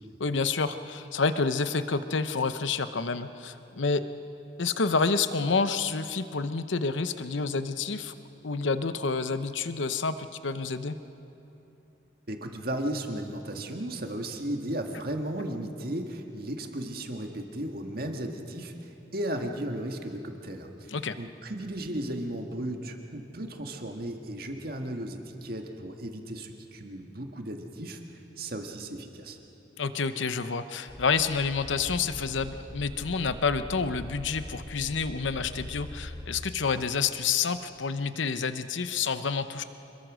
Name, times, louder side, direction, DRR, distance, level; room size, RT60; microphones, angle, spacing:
voice 1, 0.2-4.0 4.6-8.1 8.4-11.0 20.9-21.2 29.8-39.6, left 4 dB, 75° left, 11 dB, 0.8 m, -28 dB
voice 2, 12.3-28.0 28.4-29.4, right 1 dB, 50° right, 3 dB, 1.8 m, -35 dB
sound 1, 30.9-36.3, equal, ahead, 2.2 m, -42 dB
27.0 x 22.0 x 6.3 m, 3.0 s
head